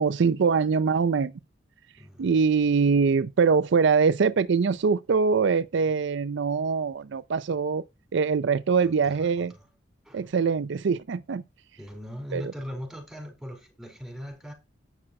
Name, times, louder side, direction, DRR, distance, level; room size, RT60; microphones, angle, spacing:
voice 1, 0.0-1.3 2.2-7.8 8.1-9.5 10.1-11.4 12.3-12.4, right 5 dB, 65° right, 0.4 m, -23 dB
voice 2, 2.0-2.3 5.9-6.0 8.8-9.7 10.0-10.3 11.8-14.5, equal, ahead, 4.7 m, -40 dB
9.9 x 6.0 x 4.3 m
head